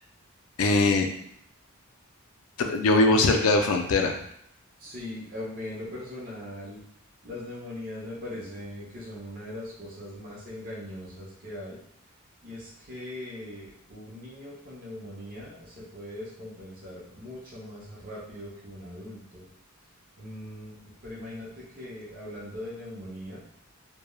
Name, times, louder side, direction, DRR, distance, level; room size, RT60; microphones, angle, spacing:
voice 1, 0.6-1.1 2.6-4.1, left 2 dB, 75° left, 4 dB, 0.4 m, -21 dB
voice 2, 3.0-3.6 4.8-6.8 7.2-11.8 12.4-19.4 20.2-23.4, left 1 dB, 40° right, -6 dB, 0.6 m, -40 dB
3.0 x 2.1 x 2.3 m, 0.71 s
head